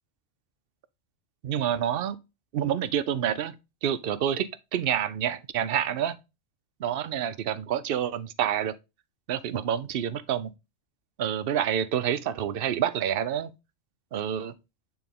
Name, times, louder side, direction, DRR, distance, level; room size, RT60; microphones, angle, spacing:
voice 1, 1.4-2.2 2.5-3.6 3.8-6.2 6.8-8.7 9.3-10.5 11.2-13.5 14.1-14.5, right 9 dB, 60° right, 0.6 m, -28 dB
8.7 x 3.5 x 3.6 m
omnidirectional pair, 1.3 m